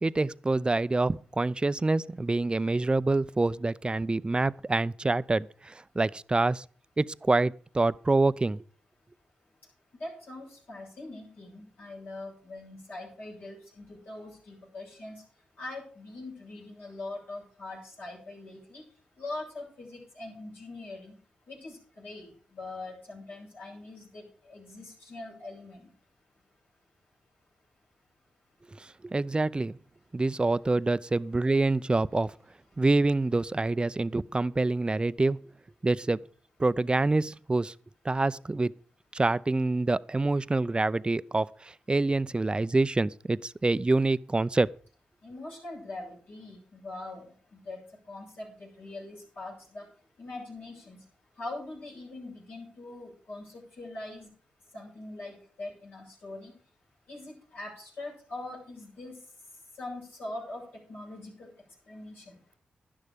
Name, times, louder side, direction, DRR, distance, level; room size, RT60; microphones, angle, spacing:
voice 1, 0.0-6.6 7.0-8.6 29.0-29.7 30.1-32.3 32.8-35.4 35.8-36.2 36.6-37.7 38.0-38.7 39.1-41.5 41.9-44.7, right 2 dB, 25° right, 0.5 m, -26 dB
voice 2, 10.0-15.2 15.6-18.8 19.2-21.1 21.5-25.9 45.2-47.2 47.5-47.8 48.1-49.8 50.2-51.0 51.4-53.5 53.8-54.3 54.7-56.5 57.1-59.1 59.8-60.6 60.9-61.5 61.9-62.2, left 2 dB, 70° left, 7.0 m, -42 dB
11.0 x 10.5 x 5.1 m
supercardioid pair, 45°, 4 cm